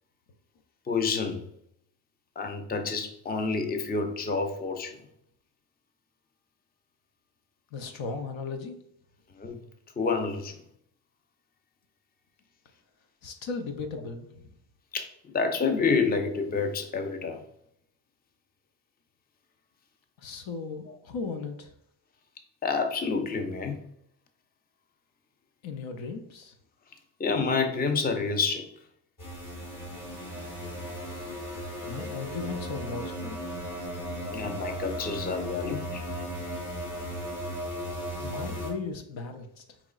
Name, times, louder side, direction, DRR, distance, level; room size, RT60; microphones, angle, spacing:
voice 1, 0.9-1.4 2.4-5.0 9.4-9.6 10.0-10.6 14.9-17.4 20.9-21.0 22.6-23.8 27.2-28.7 34.0-36.0, left 4 dB, 20° left, 6 dB, 0.5 m, -28 dB
voice 2, 7.7-8.7 13.2-14.5 20.2-21.7 25.6-26.5 31.8-33.4 38.2-39.6, left 4 dB, 70° left, 6 dB, 0.7 m, -36 dB
sound 1, 29.2-38.7, equal, 40° left, 1.6 m, -36 dB
4.8 x 3.1 x 2.3 m, 0.72 s
cardioid pair, 70°, 48 cm